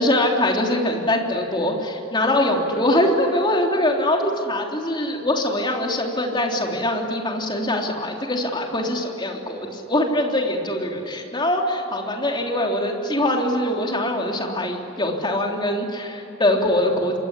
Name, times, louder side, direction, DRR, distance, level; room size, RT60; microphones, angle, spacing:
voice 1, 0.0-17.2, left 1 dB, 20° left, 1 dB, 3.4 m, -23 dB
27.0 x 21.5 x 9.9 m, 3.0 s
head